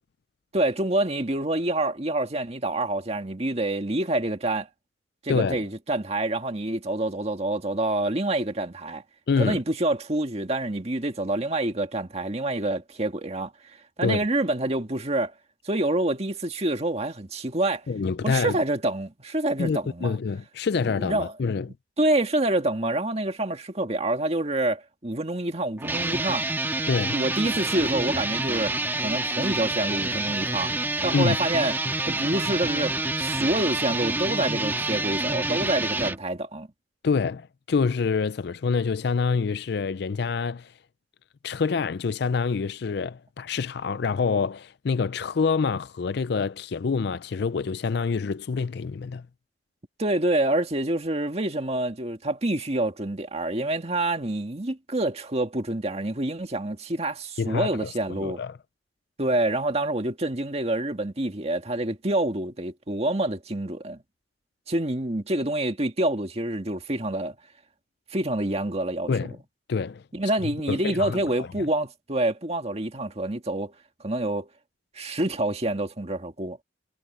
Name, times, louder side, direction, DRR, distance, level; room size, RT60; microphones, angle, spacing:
voice 1, 0.5-4.7 5.2-9.0 9.4-15.3 15.6-17.9 18.2-20.2 21.0-21.3 22.0-26.5 27.1-30.7 31.0-31.8 32.0-36.7 50.0-58.4 59.2-64.0 64.7-67.4 68.1-69.1 70.1-73.7 74.0-74.5 75.0-76.6, right 1 dB, 35° right, 1.8 m, -27 dB
voice 2, 5.3-5.6 9.3-9.6 14.0-14.2 17.9-18.6 19.6-21.7 26.9-27.2 31.1-31.4 37.0-40.7 41.4-49.3 57.4-57.9 58.2-58.6 69.1-69.4 69.7-70.0 70.4-71.2, left 5 dB, 60° left, 0.4 m, -26 dB
sound 1, 25.8-36.2, right 2 dB, 10° right, 1.5 m, -28 dB
head